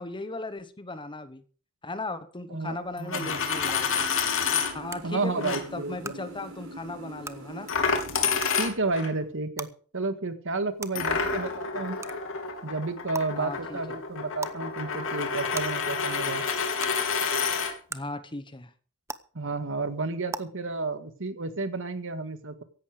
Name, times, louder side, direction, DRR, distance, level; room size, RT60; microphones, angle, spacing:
voice 1, 0.0-1.4 1.8-4.1 4.7-7.7 10.9-11.0 13.3-13.8 17.9-18.7, left 2 dB, 20° left, 12 dB, 1.1 m, -37 dB
voice 2, 2.5-3.4 5.0-6.1 8.6-9.7 9.9-12.0 12.6-16.4 19.4-22.6, right 3 dB, 60° right, 10 dB, 1.8 m, -31 dB
Coin (dropping), 3.0-4.7 5.4-5.6 7.7-9.1 11.0-17.7, left 6 dB, 60° left, 3.0 m, -29 dB
sound 1, 3.4-8.5, right 1 dB, 85° right, 6.5 m, -43 dB
sound 2, 3.7-3.8 4.9-5.0 6.0-6.1 7.2-7.3 8.4-8.5 9.6-9.7 10.8-10.9 12.0-12.1 13.1-13.2 14.4-14.6 15.5-15.6 16.8-16.9 17.9-18.0 19.1-19.2 20.3-20.4, right 3 dB, 15° right, 0.8 m, -35 dB
16.0 x 11.5 x 5.0 m, 0.41 s
head